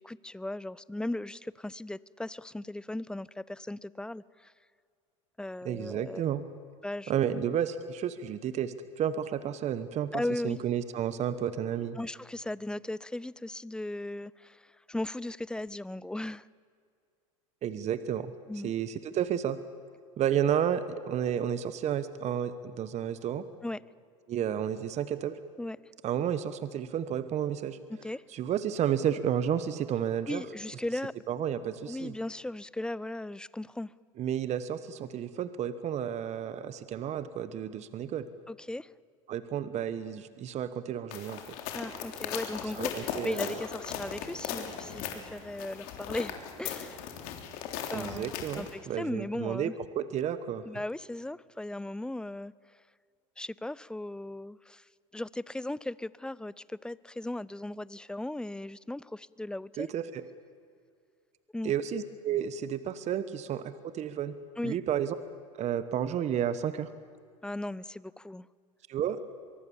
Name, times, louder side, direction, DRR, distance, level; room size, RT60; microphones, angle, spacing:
voice 1, 0.0-4.5 5.4-6.2 6.8-7.4 10.1-10.6 12.0-16.5 18.5-18.7 23.6-23.8 25.6-25.8 28.0-28.2 30.3-31.1 31.9-33.9 38.5-38.9 41.7-47.0 47.9-49.7 50.7-52.5 53.4-54.8 55.1-59.9 61.5-61.7 64.6-64.8 67.4-68.5, left 1 dB, 5° left, 21 dB, 0.5 m, -37 dB
voice 2, 5.6-6.4 7.1-12.0 17.6-18.3 18.6-19.6 20.2-23.4 24.3-25.4 26.0-27.8 28.3-30.4 31.3-32.1 34.2-38.3 39.3-41.4 42.8-43.5 47.9-50.6 59.8-60.2 61.6-64.4 64.6-65.2 65.6-66.9 68.9-69.3, right 9 dB, 40° right, 13 dB, 1.1 m, -31 dB
sound 1, 41.1-48.7, left 8 dB, 60° left, 3.4 m, -38 dB
23.5 x 23.0 x 7.2 m, 2.2 s
hypercardioid pair, 90°, 17 cm